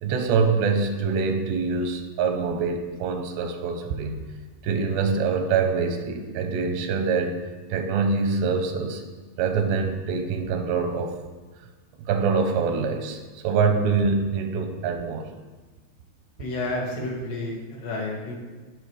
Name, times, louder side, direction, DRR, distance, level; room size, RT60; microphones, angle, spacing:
voice 1, 0.0-4.2 4.6-9.0 9.4-11.2 12.0-15.3, right 5 dB, 90° right, 6 dB, 3.0 m, -25 dB
voice 2, 16.4-18.4, left 2 dB, 80° left, -3 dB, 4.0 m, -30 dB
15.5 x 6.1 x 3.3 m, 1.3 s
omnidirectional pair, 4.8 m